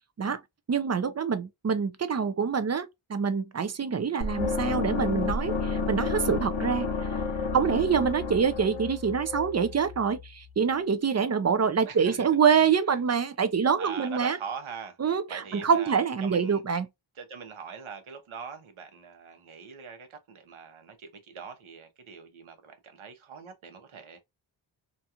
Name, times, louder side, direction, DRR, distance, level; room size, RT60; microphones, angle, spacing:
voice 1, 0.7-6.9 7.5-14.4 15.0-16.9, right 6 dB, 35° right, 0.4 m, -26 dB
sound 1, 4.2-10.3, left 4 dB, 70° left, 0.8 m, -31 dB
voice 2, 11.8-12.3 13.8-15.0 15.3-16.6 17.2-24.2, right 6 dB, 80° right, 0.9 m, -42 dB
2.6 x 2.3 x 2.8 m
wide cardioid pair, 90°, 48 cm